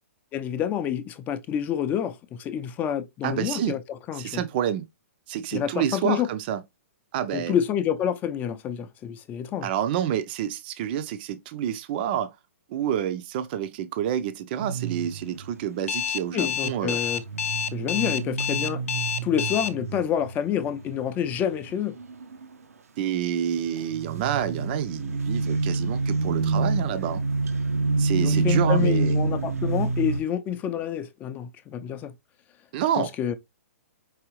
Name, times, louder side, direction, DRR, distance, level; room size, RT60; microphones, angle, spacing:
voice 1, 0.3-3.8 4.1-4.4 5.5-6.3 7.3-9.7 16.3-17.2 17.7-18.8 19.2-22.0 28.2-32.1 33.0-33.3, left 9 dB, 20° left, 0.5 m, -28 dB
voice 2, 3.2-3.7 4.2-4.8 5.3-6.6 7.1-7.5 9.6-12.3 12.7-17.0 23.0-27.2 28.0-29.2 32.7-33.1, right 10 dB, 45° right, 0.5 m, -28 dB
sound 1, 14.6-15.5 17.1-21.6 22.0-22.4 23.9-30.2, right 3 dB, 90° right, 0.7 m, -27 dB
Alarm, 15.9-19.7, left 8 dB, 70° left, 0.5 m, -28 dB
4.8 x 3.0 x 3.0 m
hypercardioid pair, 140°, 8 cm